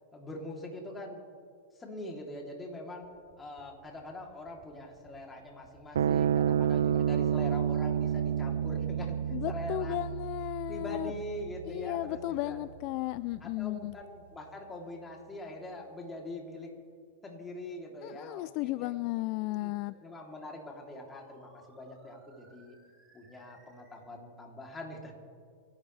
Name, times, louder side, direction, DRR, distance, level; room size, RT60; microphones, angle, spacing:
voice 1, 0.1-1.2 1.7-3.1 3.4-10.0 10.7-12.6 13.4-16.7 17.2-18.9 19.5-19.7 20.0-22.8 23.1-25.1, left 1 dB, 15° left, 0 dB, 3.3 m, -43 dB
sound 1, 3.0-14.0, right 5 dB, 50° right, 4.2 m, -60 dB
sound 2, 5.9-12.6, right 9 dB, 85° right, 0.3 m, -30 dB
voice 2, 9.3-11.1 11.7-13.9 18.0-19.9, left 19 dB, 50° left, 16 dB, 0.3 m, -34 dB
sound 3, 18.9-23.9, right 2 dB, 20° right, 4.9 m, -62 dB
27.5 x 12.0 x 3.4 m, 2.1 s
hypercardioid pair, 115°, 0 cm